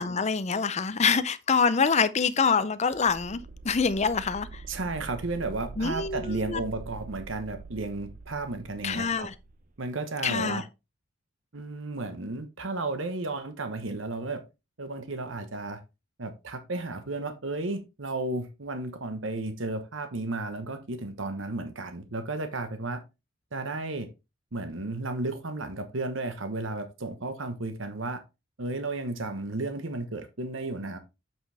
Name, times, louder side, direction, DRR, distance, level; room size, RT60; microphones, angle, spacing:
voice 1, 0.0-4.6 5.8-6.6 8.8-9.3 10.2-10.6, left 5 dB, 35° left, 0.6 m, -26 dB
sound 1, 2.9-9.6, right 4 dB, 40° right, 0.8 m, -44 dB
voice 2, 4.7-9.3 9.8-10.6 11.5-14.4 14.8-15.8 16.2-23.0 23.5-24.1 24.5-28.2 28.6-31.0, right 2 dB, 75° right, 1.1 m, -33 dB
7.7 x 6.1 x 3.4 m
head